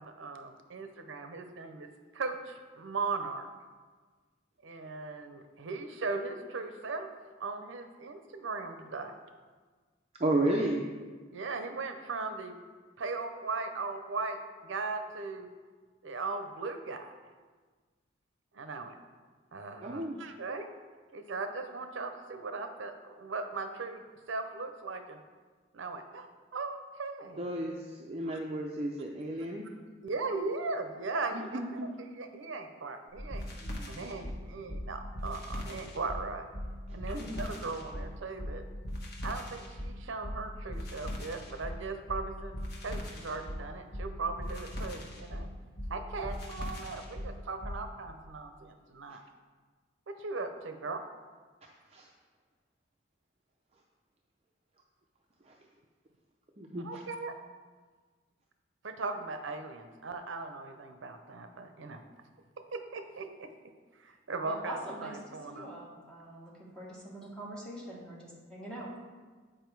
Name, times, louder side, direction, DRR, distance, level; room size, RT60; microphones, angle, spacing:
voice 1, 0.0-3.5 4.6-7.1 7.4-9.1 11.3-12.5 13.0-15.5 16.0-17.1 18.5-18.9 19.5-20.7 21.1-24.0 24.3-25.2 25.7-26.3 26.5-27.6 30.0-36.4 36.9-38.6 39.2-42.5 42.8-45.5 45.9-49.2 50.1-51.0 56.8-57.3 58.8-62.0 62.7-63.5 64.0-65.7, right 3 dB, 75° right, 7 dB, 0.6 m, -38 dB
voice 2, 10.2-10.8 19.8-20.2 27.4-29.6 31.3-31.9 37.1-37.4 51.9-52.1 55.5-55.6 56.6-56.9, right 1 dB, 30° right, -1 dB, 0.5 m, -32 dB
sound 1, 33.2-47.8, equal, 55° left, 1.2 m, -39 dB
voice 3, 64.4-65.2 65.5-68.9, right 1 dB, 5° left, -6 dB, 1.6 m, -43 dB
8.8 x 5.0 x 4.6 m, 1.4 s
head